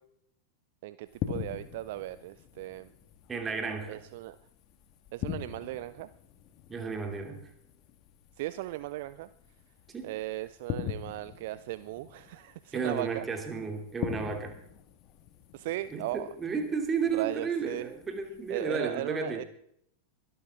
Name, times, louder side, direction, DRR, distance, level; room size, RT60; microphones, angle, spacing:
voice 1, 0.8-2.9 3.9-4.4 5.1-6.1 8.4-9.3 10.0-13.3 15.5-16.3 17.1-17.9 18.5-19.4, right 16 dB, 50° right, 15 dB, 0.5 m, -37 dB
sound 1, 1.1-18.7, left 10 dB, 40° left, 1.7 m, -43 dB
voice 2, 3.3-4.0 6.7-7.4 9.9-10.1 12.7-14.6 15.9-19.4, right 5 dB, 20° right, 5 dB, 2.8 m, -33 dB
23.0 x 12.5 x 3.7 m, 0.71 s
figure-of-eight pair, 90°, 0 cm